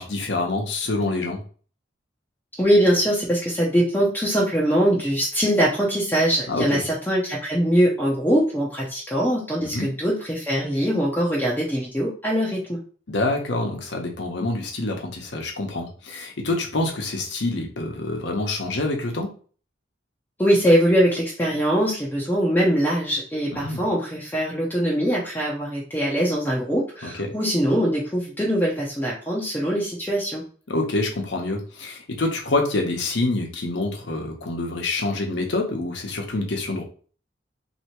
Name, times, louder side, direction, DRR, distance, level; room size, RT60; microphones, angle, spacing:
voice 1, 0.0-1.4 6.5-6.8 9.6-9.9 13.1-19.3 23.6-23.8 27.0-27.3 30.7-36.8, left 2 dB, 80° left, 2 dB, 0.9 m, -26 dB
voice 2, 2.5-12.8 20.4-30.4, equal, 10° left, -4 dB, 0.6 m, -22 dB
3.3 x 2.8 x 3.0 m, 0.41 s
head